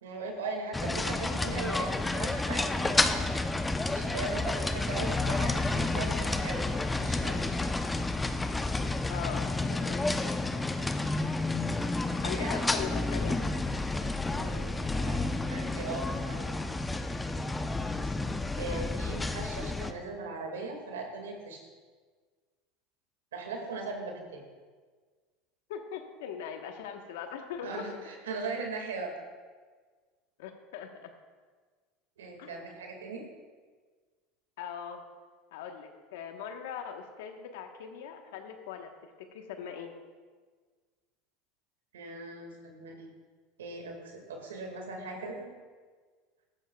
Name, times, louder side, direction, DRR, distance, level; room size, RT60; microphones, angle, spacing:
voice 1, 0.0-3.3 3.9-7.7 9.1-9.4 12.2-12.5 12.9-13.0 14.3-16.5 18.0-18.1 18.6-21.6 23.3-24.4 27.6-29.1 32.2-33.3 41.9-43.1 43.6-45.5, right 3 dB, 90° right, 2 dB, 2.0 m, -39 dB
sound 1, 0.7-19.9, left 2 dB, 15° left, 0.7 m, -30 dB
voice 2, 9.1-10.0 12.2-13.4 18.7-18.9 25.7-27.9 30.4-31.1 32.4-32.6 34.6-35.0 35.5-38.9 39.3-39.9, left 8 dB, 75° left, 5 dB, 1.2 m, -40 dB
15.5 x 12.5 x 2.4 m, 1.5 s
hypercardioid pair, 85°, 0 cm